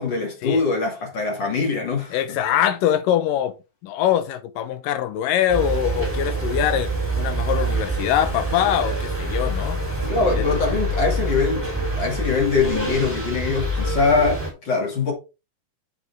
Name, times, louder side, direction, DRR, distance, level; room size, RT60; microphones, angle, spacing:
voice 1, 0.0-2.4 10.1-15.1, left 4 dB, 35° left, 2.6 m, -23 dB
voice 2, 2.1-3.5 3.8-6.9 7.2-9.8 10.4-10.5, left 10 dB, 75° left, 2.4 m, -23 dB
sound 1, 5.5-14.5, right 1 dB, 10° right, 3.1 m, -26 dB
7.9 x 6.0 x 3.5 m
omnidirectional pair, 4.1 m